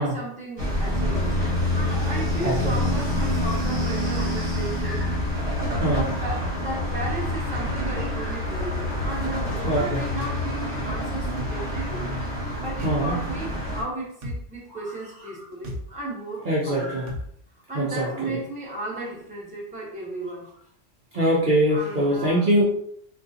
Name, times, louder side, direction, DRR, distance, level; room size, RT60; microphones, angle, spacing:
voice 1, 0.0-5.0 5.9-16.9 17.7-20.5 21.7-22.5, right 2 dB, 5° right, -4 dB, 0.7 m, -35 dB
sound 1, 0.6-13.8, left 1 dB, 30° right, 1.1 m, -27 dB
voice 2, 2.4-2.7 4.8-5.1 5.8-6.1 9.6-10.0 12.8-13.2 14.7-14.8 16.5-17.1 17.7-18.4 21.1-22.6, right 1 dB, 50° right, -4 dB, 0.7 m, -23 dB
sound 2, 11.4-11.6 12.8-13.0 14.2-14.4 15.6-15.8 17.1-17.3, left 1 dB, 90° right, 1.1 m, -32 dB
3.5 x 2.4 x 2.7 m, 0.67 s
omnidirectional pair, 1.2 m